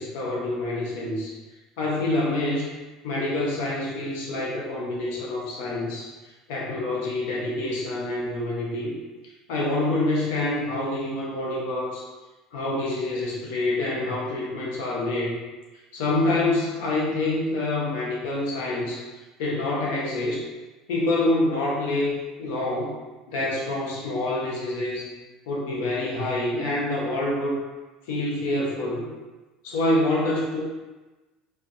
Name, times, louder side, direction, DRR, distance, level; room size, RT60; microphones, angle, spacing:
voice 1, 0.0-1.3 1.8-2.7 3.0-6.1 6.5-8.9 9.5-12.1 12.5-15.4 15.9-19.0 19.4-20.5 20.9-23.0 23.3-25.1 25.5-27.6 28.1-29.1 29.6-30.6, left 2 dB, 85° left, -4 dB, 0.7 m, -26 dB
2.6 x 2.1 x 2.4 m, 1.2 s
supercardioid pair, 115°, 0 cm